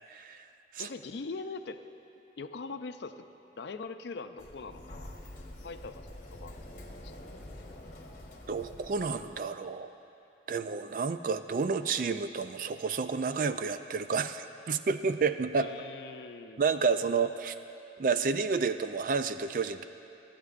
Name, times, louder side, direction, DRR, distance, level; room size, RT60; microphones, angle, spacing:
voice 1, 0.8-1.8 2.4-3.3 3.5-5.1 5.6-6.6 7.0-7.1 15.5-16.6, left 4 dB, 80° left, 9 dB, 0.5 m, -42 dB
Sliding door, 4.4-9.4, left 1 dB, 45° left, 1.0 m, -47 dB
voice 2, 8.5-9.9 10.5-15.7 16.6-17.5 18.0-19.9, right 5 dB, 50° right, 10 dB, 0.3 m, -30 dB
25.5 x 9.4 x 2.5 m, 2.9 s
head